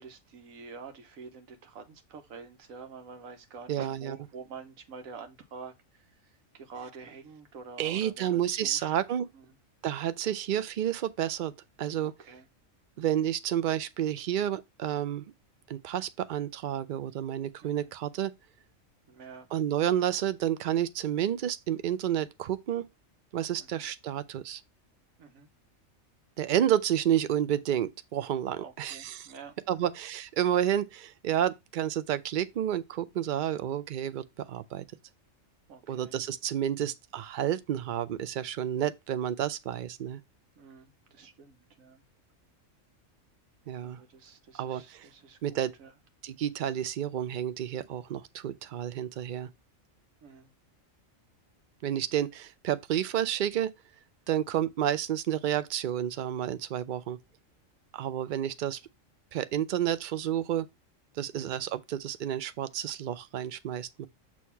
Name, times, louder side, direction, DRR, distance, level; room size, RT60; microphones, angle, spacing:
voice 1, 0.0-9.0 9.3-9.4 12.0-12.5 17.6-17.9 19.1-19.5 23.6-23.9 25.2-25.5 28.6-29.9 35.7-36.2 40.6-42.0 43.8-45.9 50.2-50.5 61.3-61.6, right 5 dB, 85° right, 1.3 m, -47 dB
voice 2, 3.7-4.2 7.8-9.3 9.8-11.5 11.8-12.1 13.0-15.2 15.7-18.3 19.5-22.9 23.3-24.6 26.4-29.3 29.7-34.8 35.9-40.2 43.7-44.0 44.6-45.1 45.4-45.7 46.2-49.5 51.8-53.7 54.3-57.2 57.9-58.8 59.3-60.7 61.2-64.1, right 10 dB, 65° right, 0.5 m, -30 dB
6.4 x 2.9 x 5.6 m
omnidirectional pair, 1.4 m